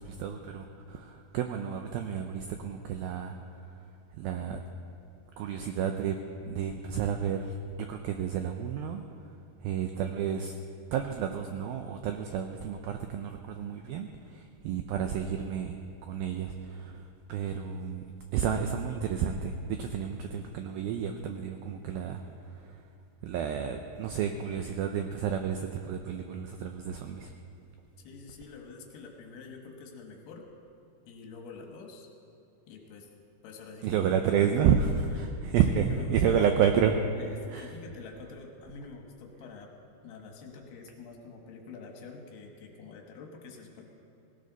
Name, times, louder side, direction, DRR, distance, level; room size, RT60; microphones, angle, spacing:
voice 1, 0.0-3.4 4.2-4.6 5.4-6.2 6.5-9.0 9.6-10.5 10.9-18.0 18.3-22.2 22.5-22.7 23.2-27.3 33.8-36.9 37.5-37.7, right 8 dB, 85° right, 5 dB, 2.1 m, -30 dB
voice 2, 28.0-30.4 31.1-32.1 32.7-33.1 33.4-34.0 34.4-34.5 35.7-36.4 37.2-39.7 40.0-43.8, left 4 dB, 70° left, 2 dB, 3.3 m, -46 dB
18.0 x 17.5 x 4.0 m, 2.7 s
omnidirectional pair, 5.0 m